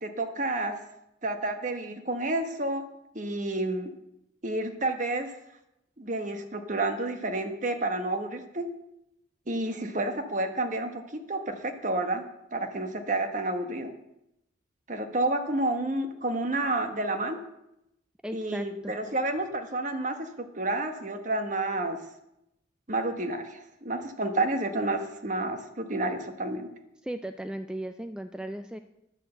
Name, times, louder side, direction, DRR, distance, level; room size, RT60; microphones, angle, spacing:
voice 1, 0.0-0.8 1.2-2.8 3.1-3.9 4.4-5.3 6.0-8.7 9.5-12.2 12.5-13.9 14.9-17.4 18.3-22.0 22.9-26.7, right 2 dB, 40° right, 6 dB, 1.1 m, -30 dB
voice 2, 18.2-18.9 27.0-28.8, right 1 dB, 5° right, 8 dB, 0.3 m, -36 dB
11.0 x 6.5 x 7.7 m, 0.84 s
head